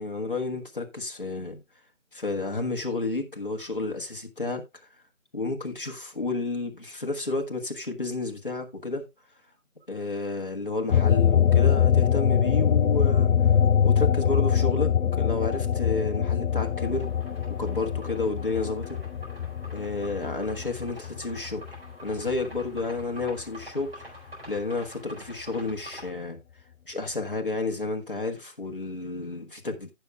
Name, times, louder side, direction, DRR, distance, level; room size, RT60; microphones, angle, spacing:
voice 1, 0.0-1.6 2.1-4.6 5.3-9.1 9.9-13.3 13.8-17.1 17.5-19.0 19.7-21.6 22.0-24.1 24.5-26.4 26.9-29.9, left 3 dB, 40° left, 1.4 m, -31 dB
sound 1, 10.9-21.8 22.2-23.6, left 8 dB, 75° left, 0.6 m, -23 dB
sound 2, 16.5-26.1, equal, 45° right, 4.8 m, -47 dB
15.0 x 7.0 x 2.4 m
figure-of-eight pair, 175°, 42 cm